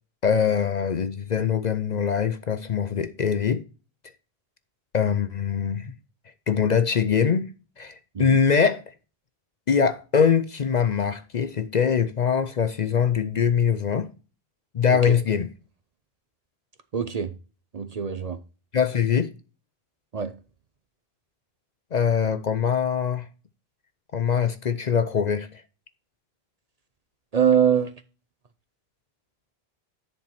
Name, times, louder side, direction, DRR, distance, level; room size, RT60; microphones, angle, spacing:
voice 1, 0.2-3.6 4.9-5.9 6.5-8.8 9.7-14.1 14.7-15.5 18.7-19.3 21.9-23.3 24.1-25.6, left 7 dB, 50° left, 0.6 m, -23 dB
voice 2, 16.9-17.3 17.7-18.4 20.1-20.3 27.3-27.9, right 8 dB, 45° right, 0.7 m, -23 dB
10.5 x 4.4 x 4.3 m
omnidirectional pair, 1.0 m